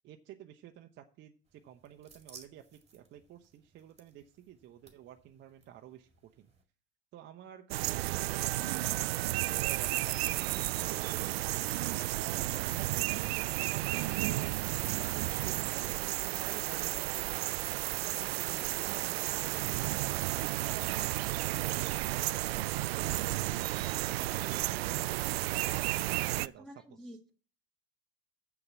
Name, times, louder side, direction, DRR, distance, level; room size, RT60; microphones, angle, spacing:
voice 1, 0.0-6.1 6.4-6.5 7.1-11.3 12.1-17.1 18.0-25.2 25.9-27.3, right 12 dB, 35° right, 5 dB, 0.8 m, -51 dB
sound 1, 1.4-6.6, right 4 dB, 20° right, 1.9 m, -60 dB
sound 2, 7.7-26.5, right 17 dB, 70° right, 0.5 m, -32 dB
voice 2, 26.4-27.3, equal, ahead, 2 dB, 1.4 m, -50 dB
7.1 x 6.6 x 7.5 m, 0.41 s
hypercardioid pair, 90°, 31 cm